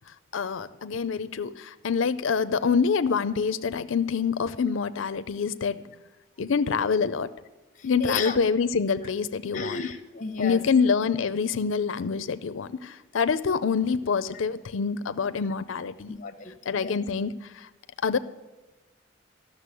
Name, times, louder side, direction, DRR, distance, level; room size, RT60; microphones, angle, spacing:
voice 1, 0.3-5.8 6.4-7.3 7.8-9.8 10.4-16.2 16.7-17.7 18.0-18.2, left 5 dB, 75° left, 13 dB, 0.5 m, -26 dB
voice 2, 7.8-8.4 9.5-10.6 16.1-16.9, left 4 dB, 40° left, 8 dB, 1.0 m, -33 dB
13.0 x 6.6 x 8.3 m, 1.1 s
head